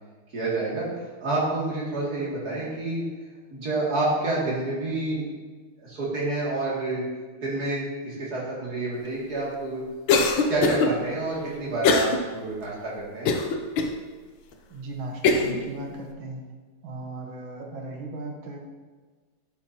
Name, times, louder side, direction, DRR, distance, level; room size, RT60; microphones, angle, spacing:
voice 1, 0.3-3.0 3.5-5.3 5.8-7.0 7.4-9.8 10.5-13.3, right 2 dB, 50° right, -6 dB, 2.9 m, -28 dB
Cough, 10.1-10.9 11.8-12.2 12.6-12.7 13.3-13.9 14.5-14.6 15.2-15.6, left 4 dB, 75° left, 1.5 m, -21 dB
voice 2, 14.7-16.4 16.8-18.6, right 2 dB, 80° right, 1 dB, 2.0 m, -37 dB
11.5 x 7.1 x 2.8 m, 1.4 s
omnidirectional pair, 2.2 m